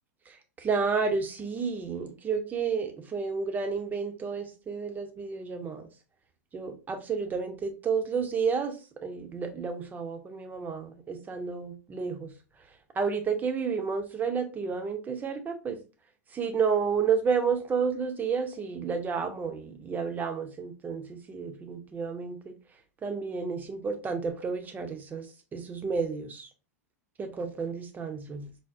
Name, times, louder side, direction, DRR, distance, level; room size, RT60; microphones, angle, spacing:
voice 1, 0.3-5.9 6.5-12.3 13.0-15.8 16.3-22.6 23.0-25.3 25.5-26.5 27.2-28.5, right 5 dB, 20° right, 0.6 m, -31 dB
4.7 x 2.0 x 2.4 m
figure-of-eight pair, 95°, 9 cm